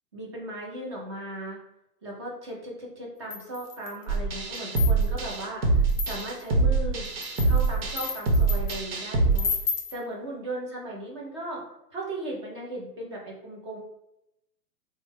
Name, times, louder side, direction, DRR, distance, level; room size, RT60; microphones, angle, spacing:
voice 1, 0.1-1.6 2.0-7.1 7.5-11.6 11.9-13.8, right 1 dB, 20° right, -3 dB, 0.4 m, -37 dB
sound 1, 3.3-4.0 4.5-5.2 5.9-6.4 7.0-8.8 9.4-10.0, left 5 dB, 35° left, 0.7 m, -33 dB
sound 2, 4.1-9.4, right 3 dB, 75° right, 0.9 m, -24 dB
3.2 x 2.1 x 3.6 m, 0.84 s
hypercardioid pair, 130°, 49 cm